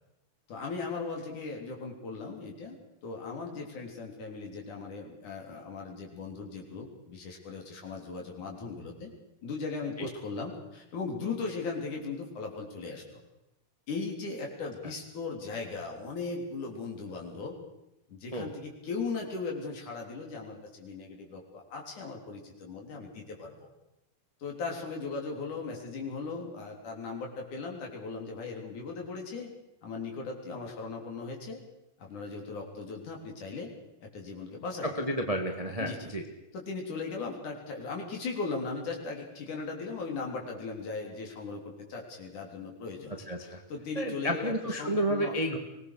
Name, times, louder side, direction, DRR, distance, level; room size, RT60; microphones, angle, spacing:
voice 1, 0.5-2.8 3.0-9.1 9.4-13.2 13.9-17.5 18.1-23.7 24.4-29.5 29.8-31.6 32.0-33.7 34.0-35.2 35.8-36.1 36.5-45.3, left 4 dB, 55° left, 1 dB, 4.9 m, -38 dB
voice 2, 34.8-36.2 43.3-43.6 43.9-45.6, equal, 20° right, 4 dB, 0.9 m, -31 dB
24.5 x 19.5 x 6.6 m, 0.89 s
omnidirectional pair, 4.3 m